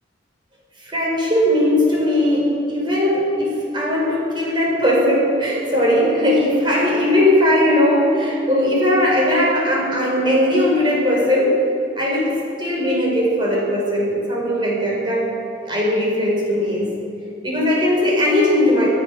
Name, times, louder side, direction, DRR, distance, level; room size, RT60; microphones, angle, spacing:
voice 1, 0.8-11.6 12.0-15.4 15.6-17.0 17.4-18.9, left 1 dB, 25° right, -4 dB, 4.4 m, -18 dB
26.0 x 8.8 x 6.2 m, 2.9 s
head